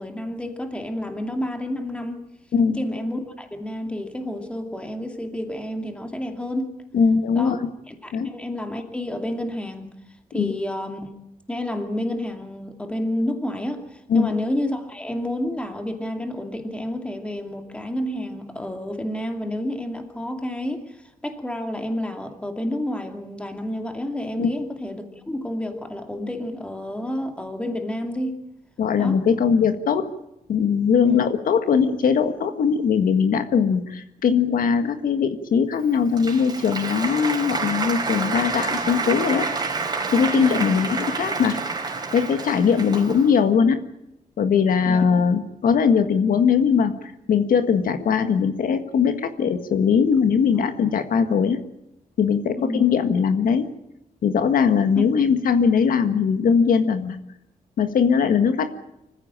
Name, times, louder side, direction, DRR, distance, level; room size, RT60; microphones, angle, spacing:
voice 1, 0.0-2.2 2.7-6.8 7.3-7.6 7.9-9.9 10.3-11.1 11.5-21.0 21.2-28.4 29.0-29.2 31.0-31.2 40.3-40.8 42.6-42.8 44.9-45.0 52.6-52.8 55.0-55.1, left 1 dB, 10° left, 5 dB, 2.6 m, -29 dB
voice 2, 6.9-7.7 8.1-8.3 10.3-10.5 14.1-14.3 24.4-24.5 28.8-30.0 30.5-39.4 40.1-41.6 42.1-43.8 44.4-51.6 52.2-53.7 54.2-57.2 57.8-58.7, left 6 dB, 75° left, 8 dB, 1.7 m, -20 dB
Applause, 35.8-43.4, right 4 dB, 30° right, 4.5 m, -28 dB
25.5 x 15.0 x 8.8 m, 0.85 s
wide cardioid pair, 160°, 15 cm